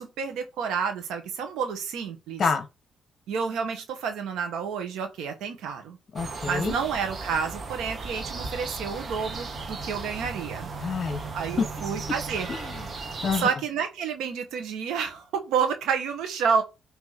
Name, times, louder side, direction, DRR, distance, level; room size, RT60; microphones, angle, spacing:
voice 1, 0.0-2.4 3.3-6.0 6.5-10.7 11.3-12.5 13.4-16.6, right 6 dB, 85° right, 1.6 m, -29 dB
voice 2, 6.1-6.8 10.8-11.2 11.6-11.7 12.5-13.0 13.2-13.5, left 5 dB, 45° left, 1.0 m, -27 dB
sound 1, 6.2-13.4, right 4 dB, 45° right, 1.5 m, -36 dB
10.0 x 3.4 x 5.1 m
cardioid pair, 90°, 0 cm